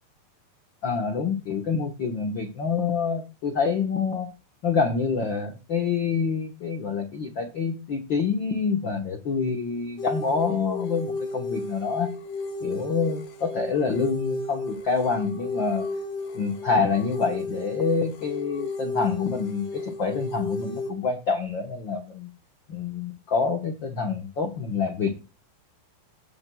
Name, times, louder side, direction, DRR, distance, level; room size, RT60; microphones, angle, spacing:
voice 1, 0.8-4.3 4.6-12.1 12.6-15.9 16.3-22.3 22.7-25.2, left 5 dB, 80° left, 5 dB, 1.0 m, -27 dB
sound 1, 10.0-20.9, left 2 dB, 65° left, 3.0 m, -33 dB
17.5 x 7.5 x 2.3 m, 0.31 s
omnidirectional pair, 4.3 m